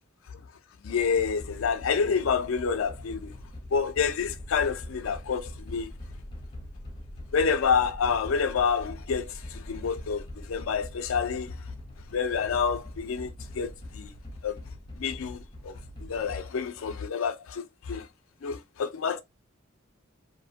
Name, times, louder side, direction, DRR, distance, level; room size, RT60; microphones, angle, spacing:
voice 1, 0.8-3.3 3.7-5.9 7.3-11.6 12.1-14.1 14.4-14.6 15.0-18.1 18.4-19.2, left 6 dB, 75° left, 0.4 m, -28 dB
sound 1, 1.0-16.4, left 1 dB, 20° left, 0.7 m, -43 dB
2.6 x 2.1 x 2.7 m
head